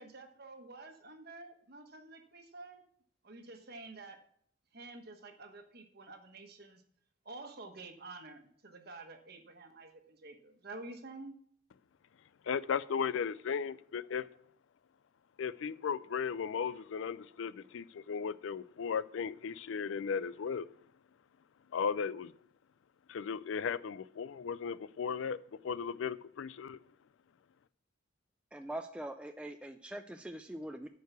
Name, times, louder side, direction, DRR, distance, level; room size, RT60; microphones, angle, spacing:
voice 1, 0.0-2.8 3.2-4.2 4.7-6.8 7.2-11.3, right 2 dB, 50° right, 1.2 m, -49 dB
voice 2, 12.5-14.3 15.4-20.7 21.7-22.3 23.1-25.4 25.6-26.8, left 6 dB, 70° left, 0.4 m, -36 dB
voice 3, 28.5-30.9, right 1 dB, 5° right, 0.3 m, -43 dB
9.2 x 4.7 x 6.7 m
head